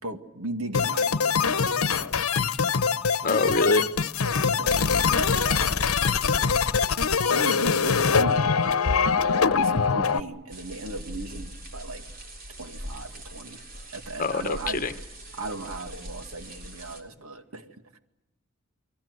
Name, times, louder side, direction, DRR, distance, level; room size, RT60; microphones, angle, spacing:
voice 1, 0.0-2.1 2.4-2.5 3.2-3.5 4.2-5.8 6.2-6.6 7.3-8.5 9.2-12.0 12.6-13.6 13.9-15.0 15.3-17.8, right 2 dB, 85° right, 7 dB, 2.1 m, -37 dB
sound 1, 0.7-10.2, left 5 dB, 85° left, 0.9 m, -23 dB
voice 2, 3.2-3.9 14.2-14.9, left 3 dB, 40° left, 11 dB, 1.2 m, -24 dB
sound 2, 10.5-17.0, right 1 dB, 45° right, 3.5 m, -41 dB
29.5 x 23.5 x 8.0 m, 0.99 s
head